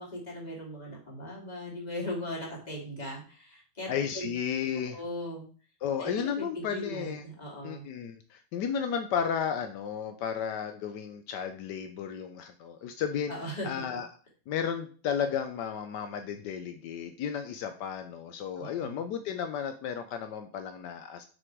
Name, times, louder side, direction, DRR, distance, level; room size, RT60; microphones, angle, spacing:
voice 1, 0.0-4.3 4.8-5.5 6.0-7.8 13.3-13.7 18.6-19.0, equal, 25° left, -2 dB, 2.6 m, -38 dB
voice 2, 3.9-5.0 5.8-7.2 7.6-13.3 13.6-14.1 14.5-21.3, left 7 dB, 80° left, 7 dB, 1.3 m, -33 dB
6.3 x 6.2 x 4.6 m, 0.40 s
omnidirectional pair, 1.8 m